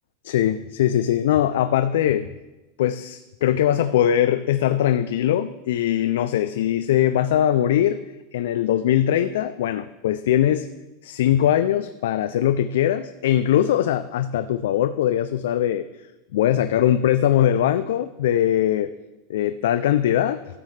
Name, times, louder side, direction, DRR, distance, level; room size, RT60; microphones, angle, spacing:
voice 1, 0.2-2.3 2.8-8.0 8.3-10.7 11.0-15.9 16.3-18.9 19.3-20.4, left 11 dB, 75° left, 11 dB, 0.3 m, -21 dB
13.0 x 7.4 x 3.3 m, 1.1 s
supercardioid pair, 175°, 0 cm